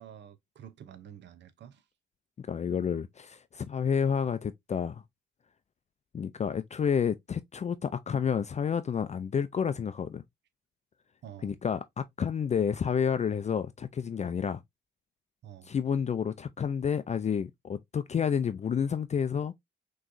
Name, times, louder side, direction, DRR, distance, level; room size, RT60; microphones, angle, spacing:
voice 1, 0.0-1.9 11.2-11.6 15.4-15.7, right 9 dB, 60° right, 0.8 m, -49 dB
voice 2, 2.4-5.0 6.1-10.2 11.4-14.6 15.7-19.5, left 7 dB, 35° left, 0.5 m, -30 dB
5.8 x 3.1 x 2.6 m
cardioid pair, 90°, 20 cm